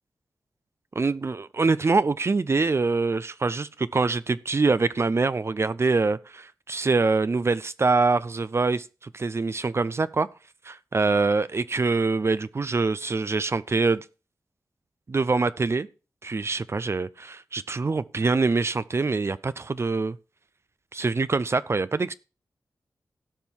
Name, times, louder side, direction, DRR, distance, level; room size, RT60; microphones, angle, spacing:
voice 1, 1.0-8.8 9.1-10.3 10.6-14.0 15.1-15.9 16.2-20.2 20.9-22.1, right 3 dB, 40° right, 0.5 m, -24 dB
16.5 x 5.5 x 4.5 m
cardioid pair, 70°, 7 cm